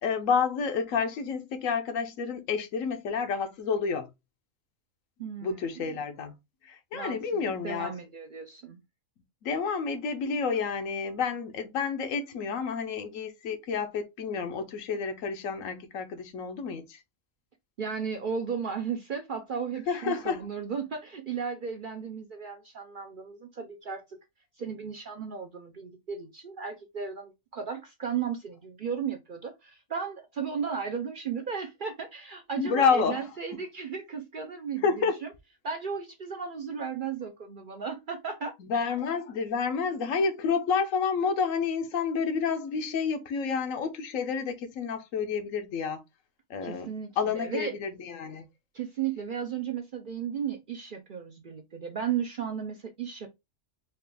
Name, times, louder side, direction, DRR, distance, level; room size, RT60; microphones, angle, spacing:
voice 1, 0.0-4.1 5.4-6.3 6.6-7.9 9.4-17.0 19.9-20.4 32.6-33.2 34.8-35.1 38.6-46.0 46.5-46.9 47.2-48.4, left 5 dB, 75° left, 1.1 m, -29 dB
voice 2, 5.2-6.0 6.9-8.8 17.8-24.2 24.6-35.3 35.6-38.9 46.6-47.8 48.7-53.3, right 6 dB, 55° right, 0.6 m, -35 dB
4.5 x 2.4 x 3.3 m
omnidirectional pair, 1.4 m